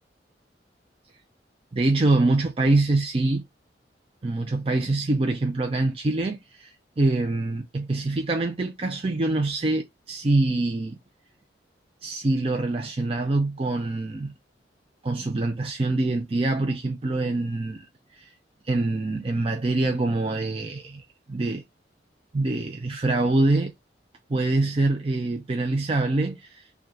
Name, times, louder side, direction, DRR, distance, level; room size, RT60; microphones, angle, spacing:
voice 1, 1.7-3.4 4.2-11.0 12.0-14.3 15.0-17.9 18.1-18.4 18.6-21.0 21.3-21.6 22.3-23.7 24.3-26.6, right 2 dB, 35° right, 0.5 m, -25 dB
4.6 x 2.3 x 2.6 m
head